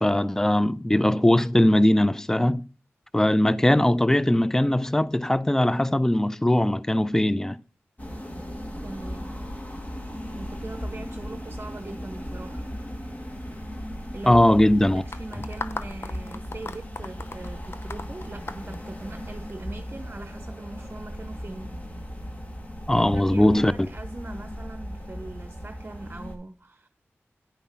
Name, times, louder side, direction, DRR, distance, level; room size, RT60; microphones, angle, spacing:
voice 1, 0.0-2.6 3.1-7.6 14.3-15.0 22.9-23.7, left 1 dB, 10° left, 0.5 m, -20 dB
sound 1, 8.0-26.4, equal, 30° left, 1.7 m, -37 dB
sound 2, 8.5-25.5, left 1 dB, 85° left, 2.7 m, -47 dB
voice 2, 8.8-9.4 10.3-12.7 14.1-14.5 14.8-21.8 22.9-26.9, right 2 dB, 35° right, 0.8 m, -41 dB
sound 3, 15.1-19.5, left 3 dB, 55° left, 0.7 m, -37 dB
10.5 x 5.6 x 5.6 m
cardioid pair, 50°, 5 cm